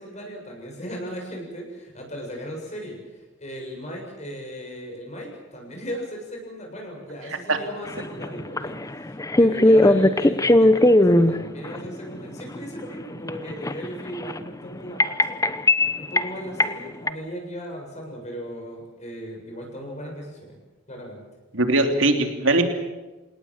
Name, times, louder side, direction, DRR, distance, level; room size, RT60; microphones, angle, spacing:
voice 1, 0.0-15.4 15.9-20.6 20.9-21.3, equal, 35° left, 1 dB, 7.4 m, -37 dB
sound 1, 7.9-11.9 12.4-14.5 15.0-16.3 16.6-16.8 17.1-17.2, left 1 dB, 15° left, 0.9 m, -18 dB
voice 2, 21.5-22.7, right 2 dB, 80° right, 5 dB, 3.1 m, -20 dB
28.0 x 18.5 x 7.5 m, 1.2 s
head